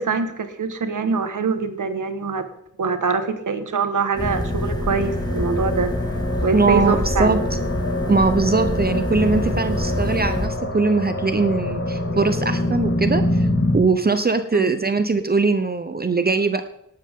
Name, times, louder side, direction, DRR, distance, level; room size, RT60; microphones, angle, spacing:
voice 1, 0.0-2.5 2.8-5.9 6.4-7.4 14.5-14.7, right 5 dB, 85° right, 9 dB, 1.6 m, -24 dB
sound 1, 4.2-13.7, left 1 dB, 50° left, 3.1 m, -25 dB
sound 2, 4.2-10.5, equal, 15° left, 2.4 m, -27 dB
voice 2, 6.5-7.4 8.1-16.6, right 3 dB, 30° right, 10 dB, 0.9 m, -21 dB
18.5 x 12.0 x 3.8 m, 0.81 s
wide cardioid pair, 115°, 30 cm